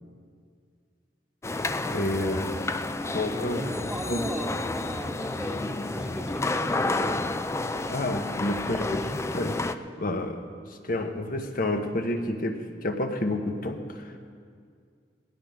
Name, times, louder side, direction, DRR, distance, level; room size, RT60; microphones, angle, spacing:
sound 1, 1.4-9.7, left 2 dB, 15° left, 0.4 m, -30 dB
voice 1, 1.9-2.8 3.1-3.7 4.1-4.2 7.9-10.4 10.8-14.3, left 1 dB, 55° left, 5 dB, 1.2 m, -30 dB
voice 2, 3.5-7.3, equal, 5° right, 2 dB, 1.3 m, -37 dB
20.0 x 15.5 x 3.7 m, 2.1 s
head